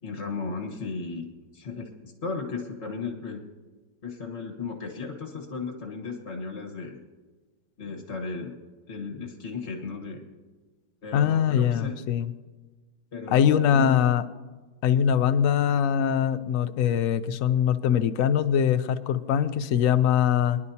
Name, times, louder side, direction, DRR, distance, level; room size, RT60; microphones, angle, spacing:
voice 1, 0.0-1.3 1.5-3.4 4.0-7.0 7.8-8.5 8.9-10.2 11.0-12.0 13.1-14.0, left 4 dB, 40° left, 3 dB, 1.5 m, -35 dB
voice 2, 11.1-12.3 13.3-14.2 14.8-20.6, left 9 dB, 65° left, 12 dB, 0.8 m, -22 dB
24.0 x 11.0 x 2.8 m, 1.3 s
omnidirectional pair, 2.0 m